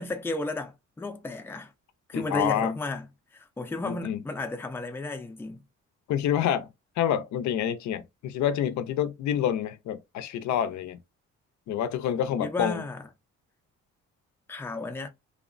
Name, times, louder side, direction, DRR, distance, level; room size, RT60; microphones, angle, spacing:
voice 1, 0.0-1.7 2.1-3.1 3.3-5.6 12.3-13.0 14.5-15.1, left 2 dB, 10° left, 0.4 m, -33 dB
voice 2, 2.1-2.7 3.9-4.2 6.1-6.7 7.0-11.0 11.7-12.8, left 10 dB, 70° left, 0.5 m, -27 dB
2.8 x 2.0 x 2.4 m
cardioid pair, 90°, 30 cm